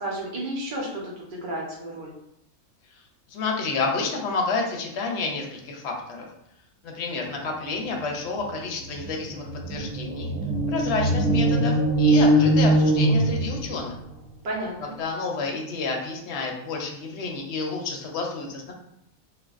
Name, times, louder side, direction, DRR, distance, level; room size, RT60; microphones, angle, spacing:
voice 1, 0.0-2.1 14.4-14.9, right 1 dB, 45° right, -3 dB, 0.8 m, -32 dB
voice 2, 3.3-6.3 6.8-10.3 10.7-14.0 15.0-18.7, left 4 dB, 65° left, 1 dB, 0.8 m, -30 dB
sound 1, 8.5-8.6 8.8-13.9, right 1 dB, 10° right, 1.1 m, -22 dB
3.2 x 2.2 x 2.4 m, 0.78 s
omnidirectional pair, 1.5 m